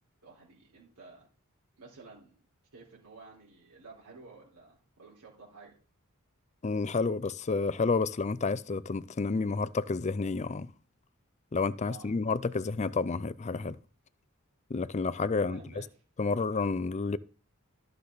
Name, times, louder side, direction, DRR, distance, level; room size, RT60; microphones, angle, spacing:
voice 1, 0.2-1.3 1.8-2.3 2.7-5.7 11.8-12.1 15.4-15.9, right 3 dB, 85° right, 4.2 m, -52 dB
voice 2, 6.6-10.7 11.5-13.8 14.7-15.8 16.2-17.2, left 4 dB, 30° left, 0.5 m, -30 dB
13.5 x 6.7 x 4.0 m
head